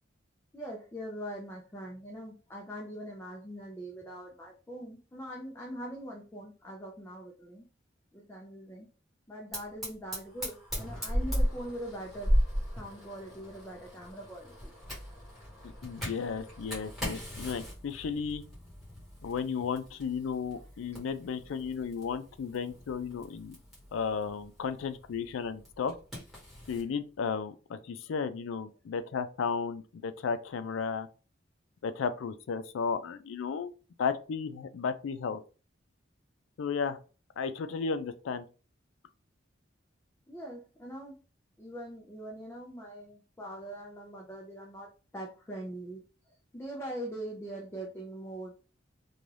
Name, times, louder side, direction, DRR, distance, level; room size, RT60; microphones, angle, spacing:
voice 1, 0.5-7.7 8.1-8.9 9.3-12.3 12.8-14.7 40.3-41.2 41.6-46.0 46.5-48.5, right 1 dB, 15° left, 0.4 m, -42 dB
Fire, 9.5-26.9, equal, ahead, 1.3 m, -37 dB
voice 2, 15.8-18.4 19.2-23.6 23.9-25.9 26.7-31.1 31.8-33.7 34.0-35.4 36.6-37.0 37.4-38.5, left 5 dB, 85° left, 0.4 m, -34 dB
2.6 x 2.2 x 3.2 m
head